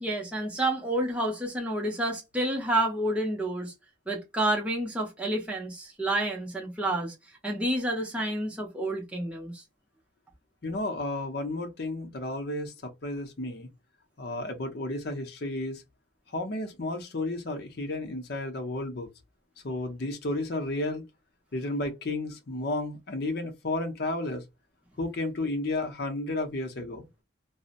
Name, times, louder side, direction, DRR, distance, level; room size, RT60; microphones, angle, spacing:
voice 1, 0.0-3.7 4.1-7.1 7.4-9.6, right 1 dB, 5° right, 0.6 m, -29 dB
voice 2, 10.6-13.7 14.2-15.8 16.3-19.1 19.6-21.1 21.5-24.4 25.0-27.1, left 2 dB, 50° left, 0.6 m, -32 dB
2.7 x 2.0 x 2.4 m
head